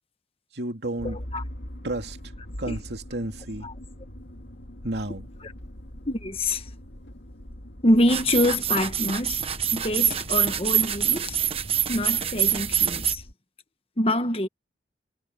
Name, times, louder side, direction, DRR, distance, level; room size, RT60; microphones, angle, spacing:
voice 1, 0.5-1.2 1.8-2.2 2.6-3.7 4.8-5.3, right 1 dB, 70° right, 2.6 m, -31 dB
Motor vehicle (road), 1.0-13.3, equal, 85° left, 2.6 m, -42 dB
voice 2, 1.0-1.4 2.6-2.8 3.6-3.7 6.0-6.7 7.8-9.4 9.7-11.4 11.9-13.2 14.0-14.5, left 1 dB, 35° left, 1.4 m, -25 dB
sound 1, 8.1-13.1, right 9 dB, 35° right, 1.3 m, -25 dB
head